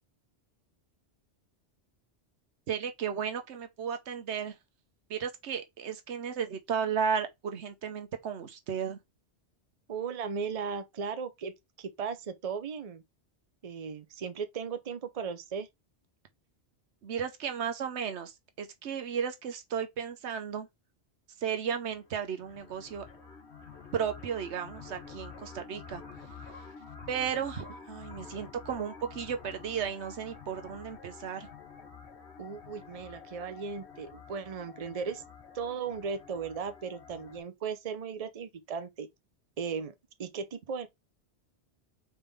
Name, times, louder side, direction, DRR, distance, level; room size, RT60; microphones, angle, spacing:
voice 1, 2.7-4.5 5.1-9.0 17.0-20.7 21.4-23.0 23.9-26.0 27.1-31.5, right 7 dB, 85° right, 1.1 m, -34 dB
voice 2, 9.9-13.0 13.6-15.7 32.4-35.2 35.5-39.1 39.6-39.9 40.2-40.9, right 6 dB, 40° right, 0.7 m, -36 dB
sound 1, 21.8-37.4, left 5 dB, 75° left, 1.8 m, -49 dB
4.2 x 3.5 x 3.5 m
omnidirectional pair, 1.1 m